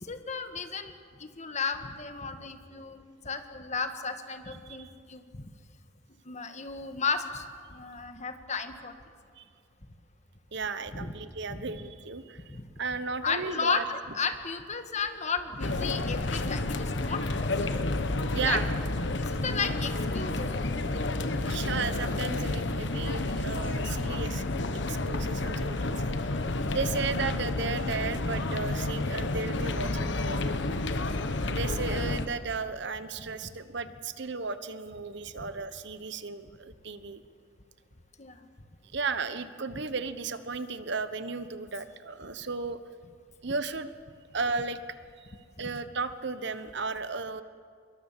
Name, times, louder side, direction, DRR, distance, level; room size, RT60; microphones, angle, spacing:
voice 1, 0.0-5.4 6.2-8.9 10.9-11.1 11.5-11.6 12.5-12.7 13.2-17.9 18.4-18.6 19.2-20.8 30.4-30.7 35.4-35.5 38.2-38.4, left 5 dB, 40° left, 8 dB, 1.6 m, -34 dB
voice 2, 10.5-12.4 12.8-13.8 18.3-18.7 21.4-24.4 24.9-26.3 26.7-30.5 31.4-37.2 38.9-42.8 43.4-43.9 44.3-44.8 45.2-45.3 45.6-47.4, right 4 dB, 65° right, 12 dB, 1.1 m, -34 dB
sound 1, 15.6-32.3, left 2 dB, 65° left, 1.2 m, -30 dB
25.0 x 23.0 x 7.5 m, 2.2 s
head